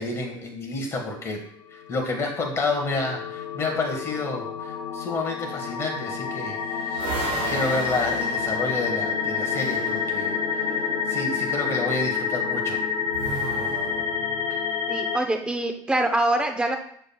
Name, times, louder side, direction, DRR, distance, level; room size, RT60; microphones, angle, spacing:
voice 1, 0.0-1.4 1.7-7.1 7.5-12.8 14.5-14.6, left 3 dB, 25° left, 1 dB, 1.5 m, -30 dB
sound 1, 1.9-15.2, left 6 dB, 75° left, 0.8 m, -28 dB
sound 2, 6.2-10.1 13.1-14.5, right 5 dB, 80° right, 1.4 m, -35 dB
sound 3, 7.0-11.3, right 5 dB, 40° right, 0.9 m, -43 dB
voice 2, 14.9-16.8, right 1 dB, 10° right, 4 dB, 0.7 m, -24 dB
7.0 x 6.3 x 2.3 m, 0.65 s
cardioid pair, 130°, 10 cm